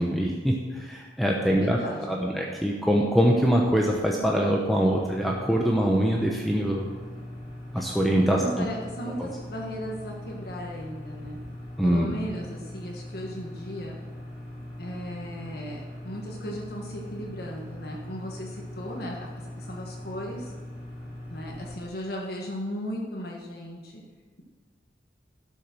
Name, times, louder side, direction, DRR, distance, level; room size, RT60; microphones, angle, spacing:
voice 1, 0.0-1.8 2.1-6.9 7.7-8.6 9.2-9.3 11.8-12.1, equal, ahead, -2 dB, 0.9 m, -23 dB
voice 2, 1.4-2.2 8.3-11.4 11.8-14.0 14.8-20.5 21.3-24.0, equal, 60° left, -1 dB, 1.5 m, -36 dB
sound 1, 5.0-21.8, left 1 dB, 25° left, 2.7 m, -41 dB
12.5 x 6.4 x 6.1 m, 1.4 s
head